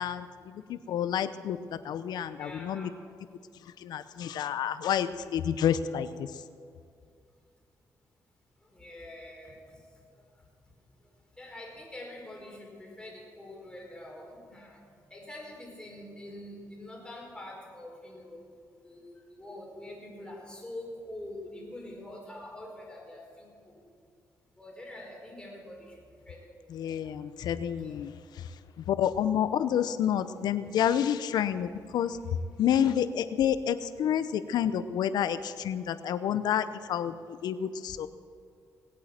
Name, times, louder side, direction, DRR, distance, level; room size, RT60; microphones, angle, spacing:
voice 1, 0.0-2.9 3.6-6.4 26.7-28.5 28.8-38.1, left 9 dB, 80° left, 13 dB, 0.7 m, -29 dB
voice 2, 2.3-2.9 8.7-9.7 10.2-10.3 11.4-14.8 15.1-18.4 18.8-23.8 24.6-25.9 26.2-27.1 27.8-28.0, left 1 dB, 10° left, -1 dB, 4.6 m, -45 dB
19.5 x 8.6 x 7.5 m, 2.3 s
cardioid pair, 95°, 7 cm